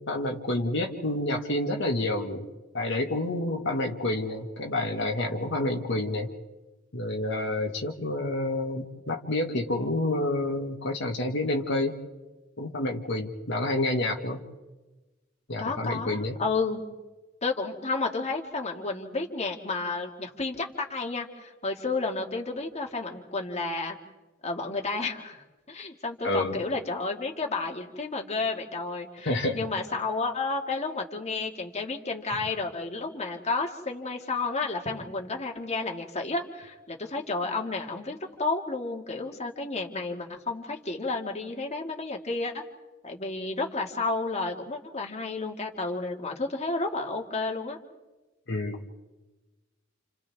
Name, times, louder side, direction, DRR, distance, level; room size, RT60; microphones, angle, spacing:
voice 1, 0.0-2.5 2.7-6.3 6.9-12.0 12.6-14.4 15.5-16.4 26.2-26.6 29.2-29.7 48.5-49.0, left 1 dB, 65° left, 0 dB, 1.8 m, -29 dB
voice 2, 15.6-16.8 17.4-24.0 24.4-42.6 43.0-47.8, left 3 dB, 35° left, 1 dB, 2.2 m, -31 dB
29.5 x 28.5 x 3.6 m, 1.2 s
head